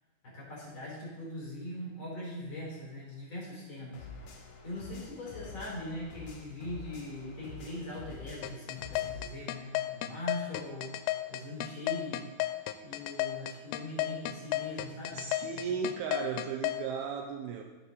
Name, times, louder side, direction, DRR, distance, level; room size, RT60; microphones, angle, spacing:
voice 1, 0.2-4.1 4.6-10.9 11.3-12.3 12.8-15.2 15.5-15.8, left 1 dB, 30° left, -6 dB, 3.9 m, -41 dB
sound 1, 3.9-9.3, left 4 dB, 65° left, 2.7 m, -48 dB
sound 2, 8.4-16.8, left 15 dB, 90° left, 2.8 m, -32 dB
voice 2, 15.1-17.6, right 6 dB, 80° right, 2 dB, 2.4 m, -35 dB
15.0 x 7.0 x 4.0 m, 1.2 s
omnidirectional pair, 5.0 m